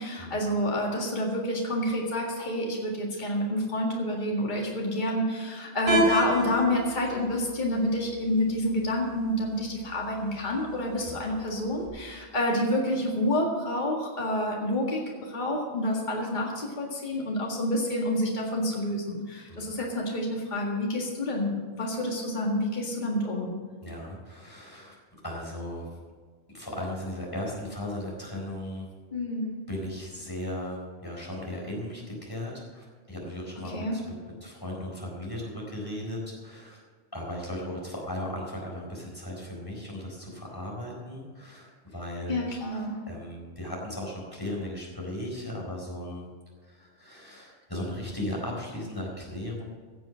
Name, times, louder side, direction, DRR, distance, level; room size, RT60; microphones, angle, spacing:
voice 1, 0.0-23.5 29.1-29.6 33.7-34.0 42.3-43.0, left 1 dB, 40° left, -2 dB, 2.1 m, -28 dB
sound 1, 5.9-11.9, equal, 15° right, 3.4 m, -32 dB
voice 2, 23.8-25.0 25.2-26.0 26.5-28.9 29.7-34.1 34.4-36.8 37.1-42.5 43.1-46.3 46.6-49.6, left 1 dB, 20° left, -3 dB, 4.4 m, -36 dB
16.5 x 7.7 x 6.3 m, 1.6 s
omnidirectional pair, 1.2 m